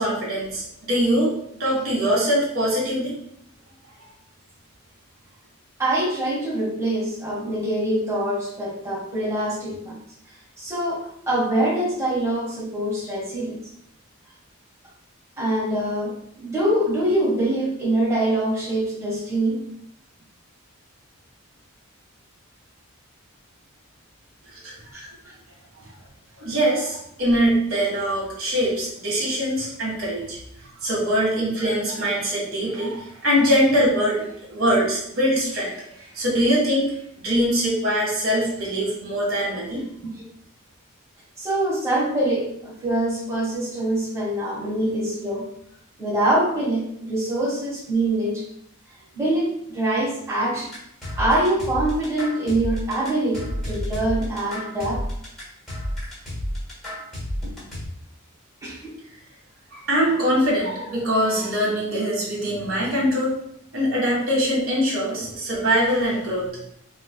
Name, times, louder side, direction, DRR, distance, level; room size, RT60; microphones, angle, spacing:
voice 1, 0.0-3.2 24.5-24.7 26.4-30.4 30.8-36.9 37.2-39.8 59.7-63.4 63.7-66.5, equal, 65° right, -5 dB, 1.5 m, -23 dB
voice 2, 5.8-10.0 10.6-13.6 15.4-19.6 24.9-25.1 40.0-40.1 41.4-45.5 46.0-48.4 49.1-50.7 51.2-55.0 58.6-58.9, right 1 dB, 15° right, -8 dB, 1.3 m, -24 dB
sound 1, 50.7-57.8, equal, ahead, 1.4 m, -30 dB
4.2 x 3.1 x 2.2 m, 0.70 s
head